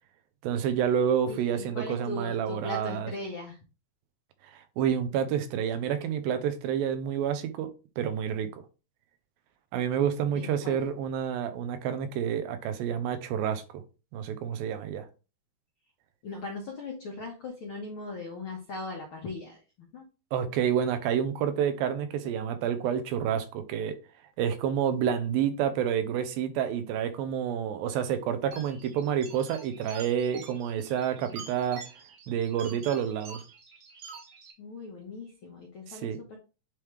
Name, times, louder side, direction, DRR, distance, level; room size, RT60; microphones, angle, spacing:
voice 1, 0.4-3.1 4.5-7.7 8.0-8.6 9.7-13.6 14.1-15.0 20.3-24.0 24.4-31.8 32.3-33.4 35.9-36.2, right 8 dB, 85° right, 2.6 m, -29 dB
voice 2, 1.3-3.6 10.3-10.8 16.2-20.0 34.6-36.4, left 3 dB, 80° left, 1.1 m, -39 dB
sound 1, 28.5-34.5, right 4 dB, 55° right, 2.1 m, -47 dB
9.1 x 3.5 x 3.2 m
omnidirectional pair, 4.1 m